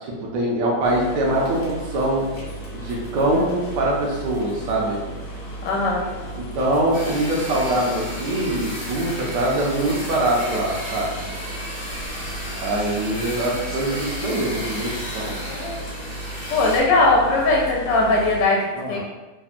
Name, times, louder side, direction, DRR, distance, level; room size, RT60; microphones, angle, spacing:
voice 1, 0.0-2.3 2.7-5.0 6.4-11.1 12.6-15.4 18.7-19.0, right 1 dB, 75° right, -2 dB, 1.3 m, -23 dB
sound 1, 0.8-18.5, right 1 dB, 60° left, 1.0 m, -35 dB
voice 2, 5.6-6.0 16.5-19.0, left 2 dB, 80° left, -1 dB, 1.2 m, -19 dB
sound 2, 6.9-16.8, equal, 40° left, 0.8 m, -34 dB
3.4 x 2.1 x 2.4 m, 1.1 s
omnidirectional pair, 1.9 m